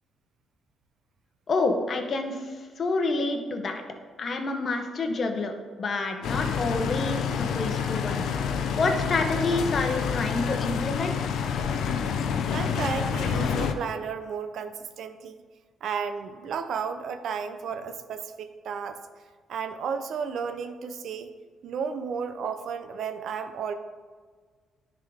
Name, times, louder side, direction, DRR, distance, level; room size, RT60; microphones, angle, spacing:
voice 1, 1.5-3.8 4.2-11.3, left 3 dB, 45° left, 5 dB, 0.9 m, -28 dB
sound 1, 6.2-13.7, left 7 dB, 75° left, 0.5 m, -28 dB
voice 2, 12.5-15.4 15.8-19.0 19.5-21.3 21.6-23.7, right 6 dB, 70° right, 9 dB, 0.5 m, -33 dB
10.5 x 3.7 x 3.5 m, 1.5 s
cardioid pair, 90°, 0 cm